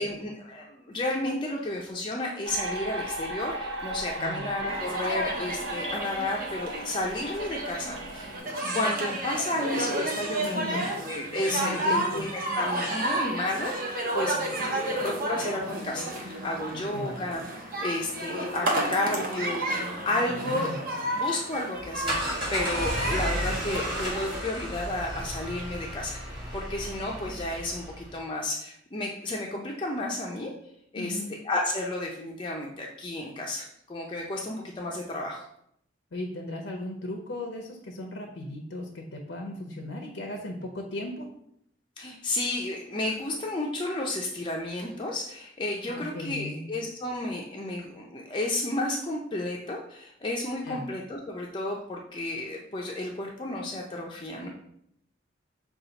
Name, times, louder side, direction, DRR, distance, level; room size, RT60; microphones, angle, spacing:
voice 1, 0.0-14.4 14.8-17.5 17.8-20.7 21.2-26.2 26.5-30.5 30.9-31.2 31.4-35.5 42.0-54.5, left 1 dB, 25° left, -1 dB, 0.4 m, -32 dB
sound 1, 2.4-8.4, right 1 dB, 85° right, 0.7 m, -36 dB
sound 2, 4.7-24.4, right 1 dB, 50° right, 0.8 m, -32 dB
voice 2, 10.4-10.9 11.5-12.2 16.7-17.2 20.1-20.8 31.0-31.3 36.1-41.3 45.9-46.7 50.6-50.9, left 1 dB, 80° left, 1 dB, 0.6 m, -37 dB
sound 3, 21.8-28.1, equal, 25° right, 1.6 m, -33 dB
5.6 x 2.3 x 3.9 m, 0.72 s
head